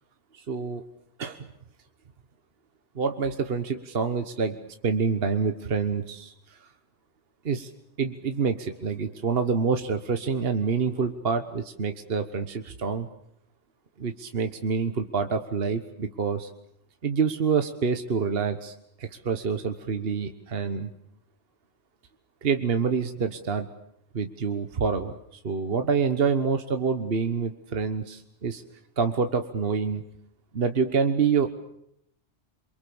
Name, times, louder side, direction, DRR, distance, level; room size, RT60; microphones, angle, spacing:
voice 1, 0.3-0.8 1.2-1.5 2.9-4.6 4.8-6.7 7.4-7.7 8.0-13.1 14.0-16.5 17.0-20.9 22.4-23.7 24.1-28.6 29.0-30.0 30.5-31.5, right 5 dB, 55° right, 8 dB, 1.5 m, -27 dB
27.5 x 23.5 x 7.1 m, 0.75 s
omnidirectional pair, 1.2 m